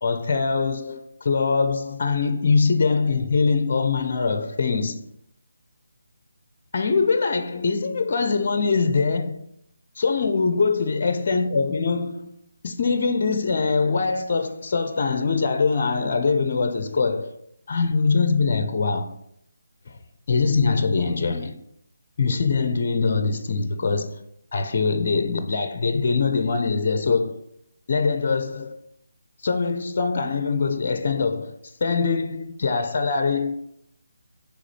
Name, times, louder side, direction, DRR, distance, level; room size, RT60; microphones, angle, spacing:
voice 1, 0.0-5.0 6.7-9.5 10.0-12.3 12.6-17.3 17.7-19.1 19.9-20.0 20.3-21.6 22.2-24.2 24.5-27.4 27.9-28.8 29.4-33.6, left 4 dB, 45° left, 0.5 m, -23 dB
4.9 x 3.5 x 5.5 m
figure-of-eight pair, 155°, 0 cm